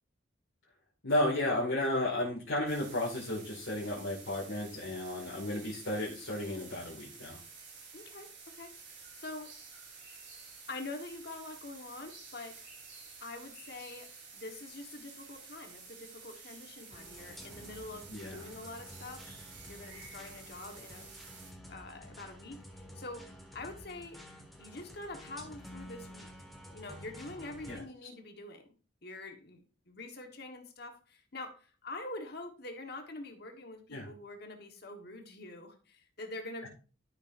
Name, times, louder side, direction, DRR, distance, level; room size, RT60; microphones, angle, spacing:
voice 1, 1.0-7.4 18.1-18.4 27.7-27.8 33.9-34.1 36.6-36.7, left 1 dB, 85° left, -6 dB, 2.3 m, -33 dB
sound 1, 2.7-21.5, right 4 dB, 60° right, 3.6 m, -51 dB
voice 2, 7.9-9.5 10.7-12.7 13.2-21.1 21.7-24.2 24.6-26.3 26.7-28.7 29.0-36.7, left 2 dB, 55° left, 4 dB, 1.5 m, -45 dB
sound 2, 16.9-27.8, equal, ahead, 1.6 m, -51 dB
12.0 x 6.6 x 2.7 m, 0.36 s
head